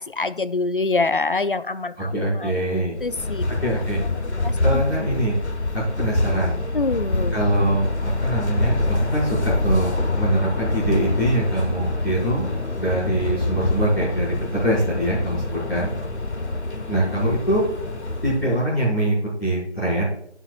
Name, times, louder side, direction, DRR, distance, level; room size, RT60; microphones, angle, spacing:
voice 1, 0.0-2.5 3.0-3.5 4.4-5.2 6.7-7.4, left 3 dB, 50° left, 14 dB, 0.5 m, -25 dB
voice 2, 2.0-3.0 3.6-4.0 4.6-5.3 6.0-6.6 7.3-12.5 12.8-15.9 16.9-17.6 18.2-20.0, right 1 dB, ahead, -19 dB, 1.7 m, -23 dB
sound 1, 3.0-18.7, left 2 dB, 65° left, 1.5 m, -26 dB
18.0 x 7.2 x 2.5 m, 0.72 s
figure-of-eight pair, 170°, 36 cm